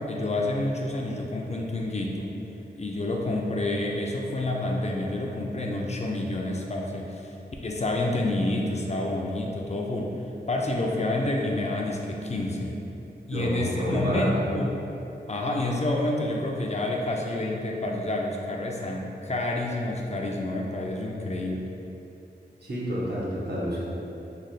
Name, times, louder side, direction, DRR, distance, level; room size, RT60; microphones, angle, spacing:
voice 1, 0.0-2.3 2.8-7.3 7.6-10.1 10.5-12.8 13.3-14.8 15.3-21.7, left 2 dB, 40° left, -1 dB, 0.4 m, -28 dB
voice 2, 13.3-14.3 22.6-23.8, equal, 70° right, -7 dB, 0.8 m, -29 dB
3.2 x 2.1 x 3.9 m, 2.9 s
wide cardioid pair, 75°, 18 cm